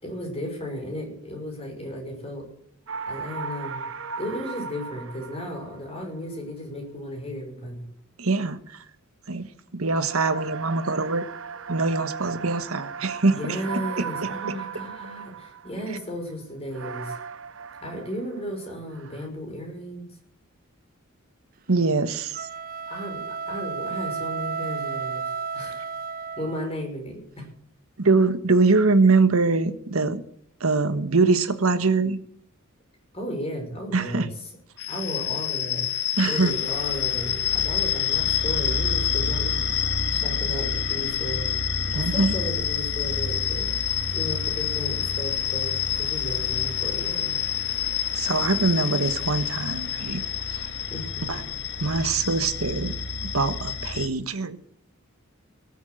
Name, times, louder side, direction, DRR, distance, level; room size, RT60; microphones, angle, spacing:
voice 1, 0.0-2.4 3.1-3.8 4.2-7.9 13.3-17.1 17.8-20.1 22.9-25.2 25.5-25.9 26.4-27.4 33.1-34.5 34.9-35.9 36.2-39.6 40.1-41.5 41.9-43.7 44.1-47.4 50.9-51.3, equal, 30° left, 2 dB, 5.7 m, -34 dB
sound 1, 2.9-6.2 10.0-16.1 16.7-18.7 18.9-19.3, right 6 dB, 65° right, 0.9 m, -37 dB
voice 2, 8.2-8.8 9.3-11.2 11.7-13.4 14.5-14.6 21.7-22.5 28.0-30.2 30.6-32.2 33.9-34.3 36.2-36.5 41.9-42.3 48.1-50.2 50.5-50.7 51.3-51.4 51.8-52.9 53.2-54.6, right 3 dB, 85° right, 11 dB, 1.4 m, -23 dB
sound 2, 22.3-26.8, right 5 dB, 45° right, 0.5 m, -32 dB
sound 3, 34.8-54.1, left 8 dB, 55° left, 1.7 m, -27 dB
18.5 x 8.4 x 8.0 m, 0.63 s
head